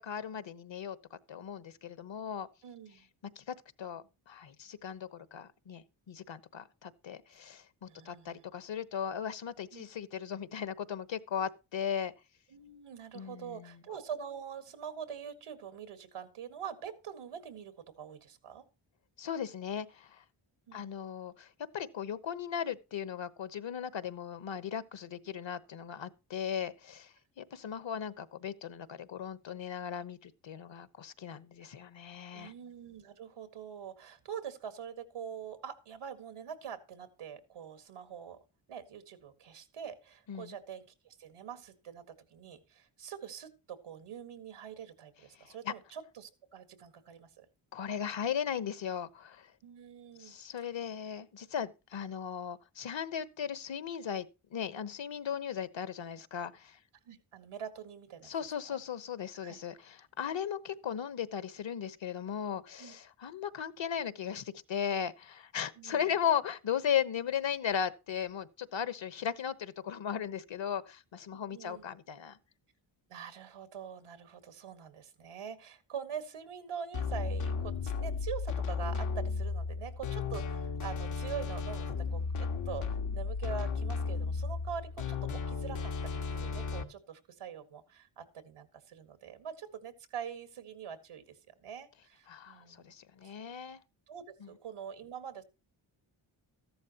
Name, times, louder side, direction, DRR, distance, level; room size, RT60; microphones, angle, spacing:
voice 1, 0.0-2.5 3.4-12.1 13.1-13.8 19.2-20.2 20.7-32.5 40.3-40.5 45.4-45.7 47.7-49.5 50.2-54.3 54.5-56.8 58.2-72.4 92.3-93.8 94.4-94.5, left 8 dB, 65° left, 1.2 m, -37 dB
voice 2, 2.6-3.1 7.9-8.4 9.7-9.8 12.5-18.6 20.7-20.9 32.3-38.4 38.7-47.5 49.6-50.4 57.1-58.3 58.7-58.8 59.4-59.6 62.8-63.0 65.8-66.1 71.3-71.9 73.1-92.9 93.2-93.4 94.1-95.4, right 8 dB, 90° right, 1.9 m, -44 dB
sound 1, 76.9-86.8, left 5 dB, 85° left, 1.7 m, -34 dB
14.0 x 12.0 x 2.9 m
cardioid pair, 60°, 49 cm